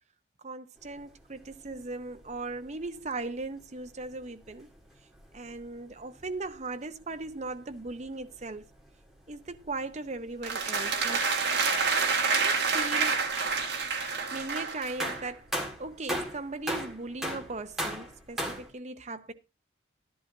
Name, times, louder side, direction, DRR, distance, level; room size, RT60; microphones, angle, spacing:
voice 1, 0.4-4.7 5.3-8.7 9.3-11.2 12.3-13.2 14.3-15.5 15.8-19.3, right 3 dB, 35° right, 0.7 m, -38 dB
sound 1, 0.8-18.7, equal, ahead, 1.8 m, -42 dB
sound 2, 10.4-15.3, right 5 dB, 60° right, 1.7 m, -28 dB
12.0 x 11.0 x 2.6 m
head